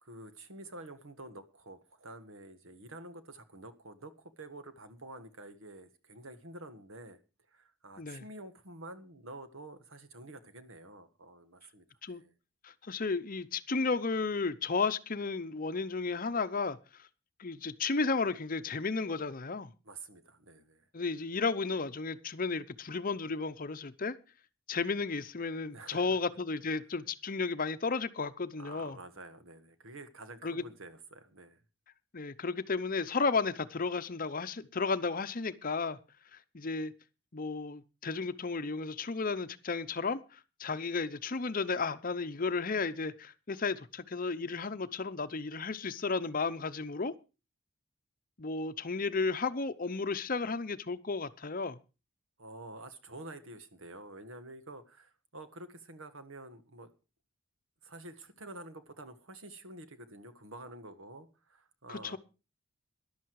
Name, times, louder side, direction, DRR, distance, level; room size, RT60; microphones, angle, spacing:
voice 1, 0.0-7.2 7.5-12.3 19.8-20.9 25.7-26.2 28.6-31.6 52.4-56.9 57.8-62.2, right 2 dB, 70° right, 1.6 m, -49 dB
voice 2, 12.6-17.1 17.4-19.7 20.9-24.1 24.7-29.0 30.4-30.6 32.1-36.0 36.3-36.9 37.3-47.1 48.4-51.8 61.9-62.2, left 4 dB, 40° left, 0.7 m, -33 dB
14.0 x 11.0 x 4.7 m
head